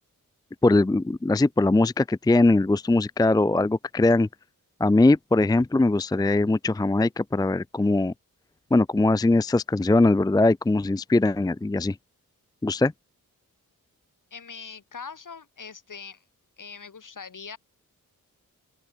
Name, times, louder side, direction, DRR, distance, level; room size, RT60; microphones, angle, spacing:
voice 1, 0.6-4.3 4.8-8.1 8.7-12.0 12.6-12.9, left 2 dB, 10° left, 0.5 m, -21 dB
voice 2, 14.3-16.2 16.6-17.6, left 5 dB, 60° left, 6.4 m, -41 dB
open air
cardioid pair, 60°, 36 cm